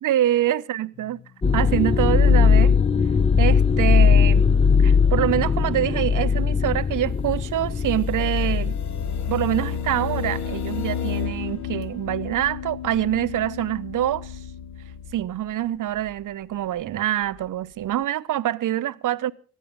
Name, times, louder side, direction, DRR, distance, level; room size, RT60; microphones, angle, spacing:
voice 1, 0.0-1.2 1.5-2.8 3.4-4.5 4.8-8.8 9.3-14.4 15.1-19.3, right 12 dB, 50° right, 0.8 m, -25 dB
sound 1, 1.0-1.3 1.5-1.9 2.2-2.5 2.8-3.1 3.4-3.7 4.1-4.3 7.5-15.2, left 8 dB, 45° left, 1.0 m, -33 dB
sound 2, 1.4-10.9 11.2-11.7 12.4-12.6, left 5 dB, 15° left, 0.6 m, -19 dB
19.5 x 13.0 x 3.6 m
hypercardioid pair, 45°, 40 cm